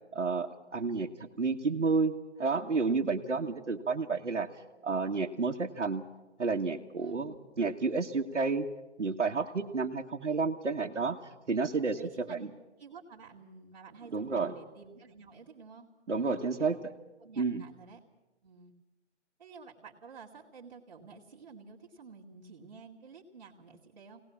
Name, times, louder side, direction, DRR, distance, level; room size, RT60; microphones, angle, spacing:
voice 1, 0.1-4.5 4.8-6.0 6.4-8.7 9.0-11.2 11.5-12.4 14.1-14.5 16.1-16.9 17.4-17.6, right 4 dB, 80° right, -2 dB, 1.6 m, -31 dB
voice 2, 7.0-7.4 12.0-12.5 12.8-16.9 17.2-18.0 18.4-18.7 19.4-24.2, right 5 dB, 35° right, -6 dB, 2.4 m, -51 dB
23.5 x 19.0 x 7.2 m, 1.1 s
hypercardioid pair, 170°, 35 cm